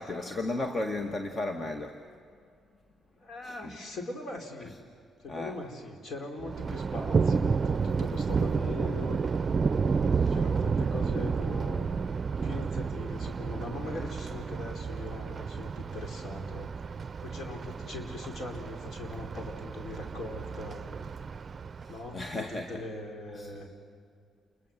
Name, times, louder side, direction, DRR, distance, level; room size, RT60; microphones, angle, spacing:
voice 1, 0.0-2.0 3.4-3.8 4.6-4.7 5.3-5.6 10.1-10.4 13.9-14.1 21.8-22.9 23.3-23.6, left 2 dB, 35° left, 5 dB, 1.8 m, -35 dB
voice 2, 3.2-4.7 5.2-9.2 10.3-16.7 17.0-20.8 21.9-23.7, left 2 dB, 60° left, 3 dB, 4.7 m, -41 dB
Thunder, 6.4-22.3, right 5 dB, 40° right, 0.5 m, -31 dB
29.5 x 22.0 x 7.6 m, 2.3 s
cardioid pair, 75°, 0 cm